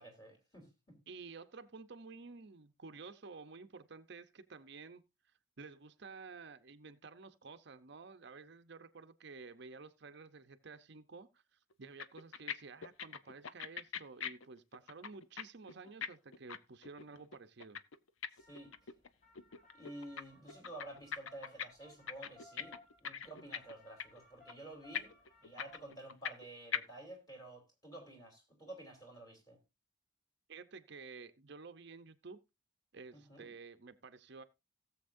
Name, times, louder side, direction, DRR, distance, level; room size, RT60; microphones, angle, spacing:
voice 1, 0.0-1.0 17.1-17.2 18.4-18.7 19.7-25.1 25.4-29.6 33.1-33.5, right 1 dB, 20° left, 3.5 m, -51 dB
voice 2, 1.1-5.0 5.6-17.8 30.5-32.4 32.9-34.4, right 4 dB, 60° right, 0.7 m, -52 dB
sound 1, 11.7-11.8 12.0-12.5 12.8-15.4 15.7-19.1 19.4-20.2 20.5-21.7 21.9-23.7 24.0-24.2 24.5-24.6 24.9-26.4 26.7-26.8, left 7 dB, 90° left, 0.7 m, -41 dB
sound 2, 18.4-25.9, left 2 dB, 40° left, 2.7 m, -63 dB
17.5 x 7.3 x 2.6 m
head